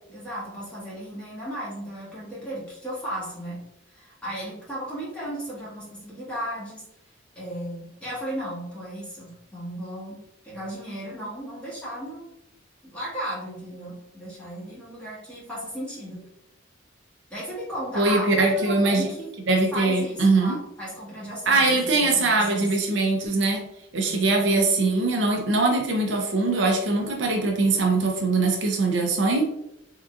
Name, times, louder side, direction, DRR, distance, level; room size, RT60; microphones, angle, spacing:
voice 1, 0.1-3.6 3.9-6.8 7.3-10.2 10.4-12.3 12.8-16.2 17.3-19.4 19.7-22.7 24.0-24.4, right 1 dB, 5° left, -8 dB, 1.5 m, -35 dB
voice 2, 18.0-19.1 19.5-20.6 21.5-23.6 23.9-29.4, right 3 dB, 70° right, 1 dB, 0.6 m, -22 dB
3.6 x 2.9 x 2.4 m, 0.84 s
head